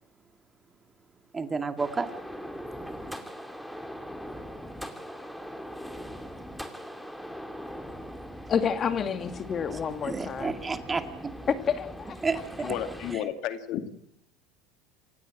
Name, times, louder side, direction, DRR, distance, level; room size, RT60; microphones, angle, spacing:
voice 1, 1.3-2.1 9.7-11.3 12.2-12.8 13.1-13.2, right 4 dB, 20° right, 8 dB, 2.1 m, -31 dB
sound 1, 1.8-13.1, equal, ahead, 2.6 m, -41 dB
voice 2, 8.5-10.5 11.7-12.2, left 7 dB, 35° left, 9 dB, 2.5 m, -29 dB
voice 3, 12.6-13.9, left 10 dB, 60° left, 9 dB, 2.3 m, -32 dB
28.0 x 16.0 x 7.7 m, 0.73 s
supercardioid pair, 105°, 0 cm